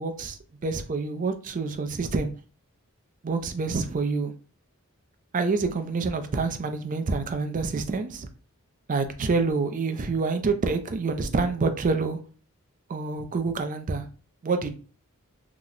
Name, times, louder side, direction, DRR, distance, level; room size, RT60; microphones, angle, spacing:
voice 1, 0.0-2.3 3.2-4.3 5.3-8.3 8.9-12.2 12.9-14.1 14.4-14.8, right 4 dB, 35° right, 0.4 m, -27 dB
2.9 x 2.1 x 3.8 m
head